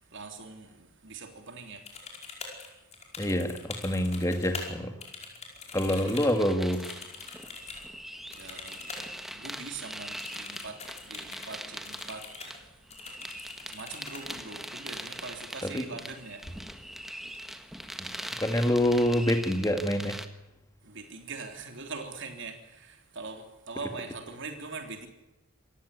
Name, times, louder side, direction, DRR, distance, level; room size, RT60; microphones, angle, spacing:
voice 1, 0.1-1.9 5.7-6.0 7.8-7.9 8.2-12.5 13.2-13.3 13.6-16.6 20.8-25.1, right 4 dB, 55° right, 3.5 m, -42 dB
sound 1, 1.9-4.7 5.0-7.9 8.3-9.1 9.3-9.4 10.2-11.6 11.8-12.6 12.9-14.2 15.9-16.1 16.4-16.9 17.2-17.8, left 4 dB, 30° left, 5.1 m, -43 dB
voice 2, 3.2-5.0 5.7-6.9 15.6-15.9 18.0-20.2, left 1 dB, 15° left, 1.9 m, -27 dB
sound 2, 6.4-20.3, equal, ahead, 1.4 m, -42 dB
27.0 x 15.0 x 8.5 m
head